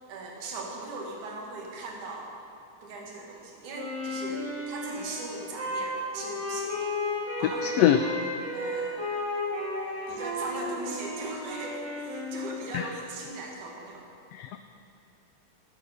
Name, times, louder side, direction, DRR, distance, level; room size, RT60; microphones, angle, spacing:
voice 1, 0.1-2.3 2.8-6.9 7.4-8.0 8.5-9.0 10.1-14.1, right 3 dB, 85° right, 0 dB, 3.2 m, -39 dB
Wind instrument woodwind instrument, 3.7-12.7, left 1 dB, 60° right, 4.7 m, -33 dB
voice 2, 7.6-8.0 12.7-12.9 14.3-14.6, left 12 dB, 85° left, 8 dB, 1.4 m, -23 dB
11.5 x 9.7 x 6.7 m, 2.9 s
omnidirectional pair, 3.4 m